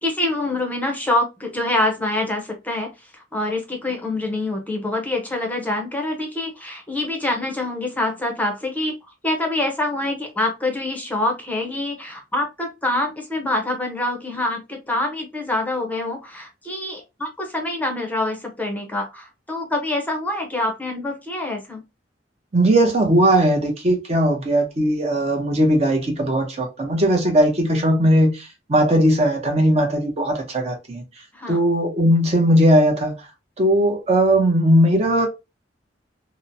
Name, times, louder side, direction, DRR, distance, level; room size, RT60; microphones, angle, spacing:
voice 1, 0.0-8.9 9.2-21.8 31.3-31.6, left 2 dB, 10° left, 0.6 m, -25 dB
voice 2, 22.5-31.0 31.5-33.1 33.6-35.3, right 1 dB, 35° right, 0.6 m, -18 dB
2.9 x 2.0 x 2.5 m
head